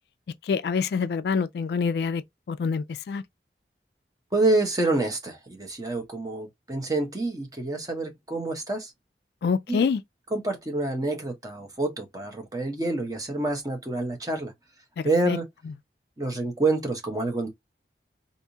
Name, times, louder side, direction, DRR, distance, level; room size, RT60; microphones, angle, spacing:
voice 1, 0.4-2.2 2.5-3.2 9.4-10.0 15.0-15.4, left 5 dB, 65° left, 0.3 m, -26 dB
voice 2, 4.3-8.9 9.7-9.9 10.3-14.5 15.0-15.5 16.2-17.5, right 2 dB, 20° right, 0.9 m, -27 dB
3.4 x 2.6 x 2.8 m
head